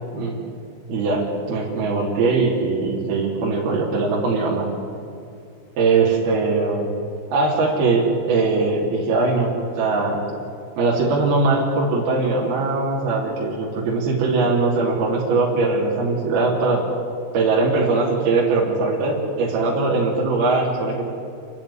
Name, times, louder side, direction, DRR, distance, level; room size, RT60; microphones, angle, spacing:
voice 1, 0.9-4.7 5.8-6.9 7.3-9.5 9.8-10.2 10.8-16.8 17.3-21.1, right 3 dB, 55° right, -4 dB, 4.6 m, -21 dB
29.0 x 12.0 x 9.9 m, 2.6 s
omnidirectional pair, 5.7 m